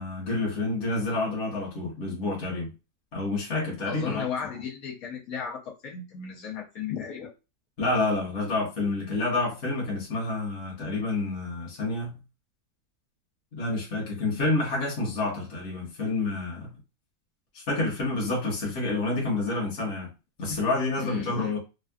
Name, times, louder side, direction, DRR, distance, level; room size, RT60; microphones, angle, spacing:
voice 1, 0.0-2.7 3.1-4.2 7.8-12.2 13.5-16.7 17.5-20.1 20.4-21.6, left 2 dB, 55° left, 1.4 m, -28 dB
voice 2, 3.8-7.3 21.0-21.5, left 7 dB, 70° left, 1.1 m, -35 dB
3.4 x 2.2 x 2.3 m
omnidirectional pair, 1.6 m